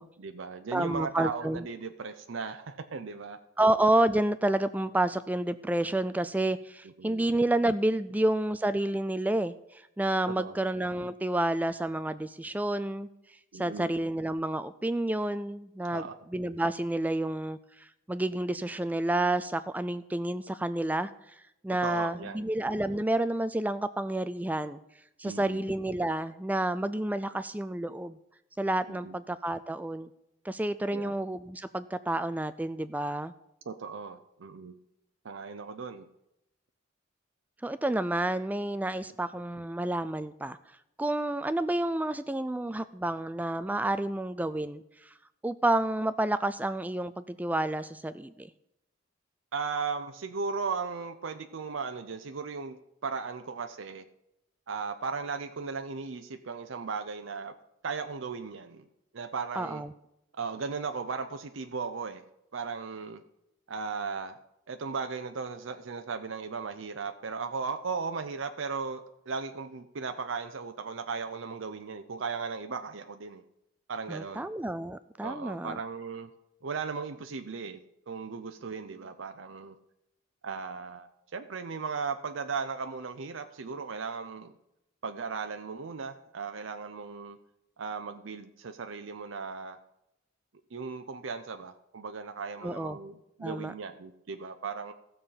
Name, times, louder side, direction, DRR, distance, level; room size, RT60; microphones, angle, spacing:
voice 1, 0.2-3.4 7.0-7.3 10.4-10.6 13.5-13.9 15.9-16.2 21.8-22.5 25.2-25.7 28.9-29.1 30.9-31.1 33.7-34.7 35.2-36.1 49.5-54.1 54.7-57.5 57.8-58.9 59.1-59.8 60.3-62.2 62.5-63.2 63.7-64.4 64.7-73.4 73.9-74.5 75.2-76.3 76.6-77.8 78.1-79.8 80.4-84.5 85.0-87.4 87.8-89.8 90.7-94.9, right 5 dB, 75° right, 7 dB, 0.6 m, -36 dB
voice 2, 0.7-1.7 3.6-13.1 13.5-21.1 21.6-24.8 25.2-28.2 28.6-30.1 30.4-33.3 37.6-40.6 41.0-45.1 45.4-48.5 59.5-59.9 74.1-75.8 92.6-93.0 93.4-93.7, right 1 dB, 10° right, 13 dB, 0.3 m, -29 dB
15.0 x 6.9 x 5.6 m, 0.84 s
head